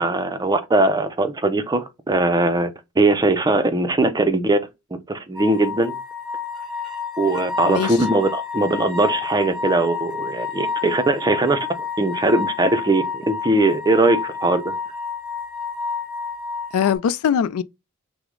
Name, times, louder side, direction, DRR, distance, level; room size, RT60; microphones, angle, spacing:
voice 1, 0.0-4.6 4.9-6.0 7.2-14.8, right 2 dB, 20° right, 0.5 m, -20 dB
sound 1, 5.4-17.0, left 5 dB, ahead, 1.2 m, -29 dB
voice 2, 7.6-8.0 16.7-17.6, left 8 dB, 75° left, 0.3 m, -21 dB
6.0 x 2.1 x 3.7 m
head